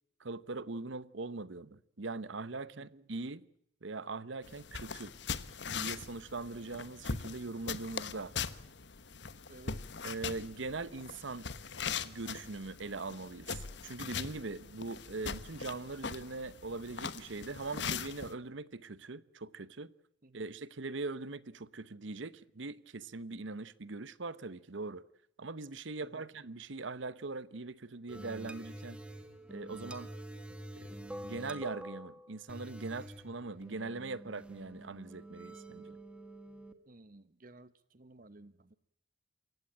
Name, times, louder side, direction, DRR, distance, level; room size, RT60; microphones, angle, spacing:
voice 1, 0.2-3.4 3.8-5.1 5.8-8.3 10.0-11.5 12.0-19.9 20.3-25.0 25.4-29.0 29.5-30.1 30.8-36.0, right 3 dB, 75° right, 0.9 m, -41 dB
sound 1, 4.4-18.3, left 6 dB, 65° left, 1.2 m, -41 dB
voice 2, 9.5-9.8 20.2-20.4 26.0-26.3 30.5-30.6 36.9-38.7, right 2 dB, 45° right, 1.0 m, -55 dB
sound 2, 28.1-36.7, right 1 dB, 5° right, 1.6 m, -47 dB
28.0 x 16.0 x 8.6 m
head